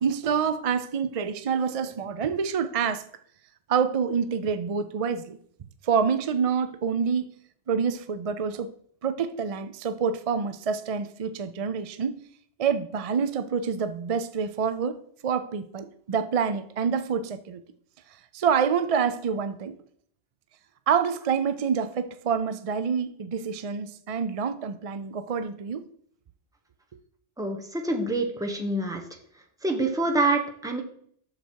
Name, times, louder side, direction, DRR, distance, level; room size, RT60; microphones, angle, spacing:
voice 1, 0.0-3.0 3.7-5.4 5.8-7.3 7.7-8.7 9.0-12.2 12.6-17.6 18.3-19.8 20.9-25.8, right 6 dB, 50° right, 0.4 m, -27 dB
voice 2, 27.4-29.0 29.6-30.8, right 2 dB, 5° right, 1.1 m, -26 dB
7.8 x 6.8 x 4.6 m
omnidirectional pair, 1.2 m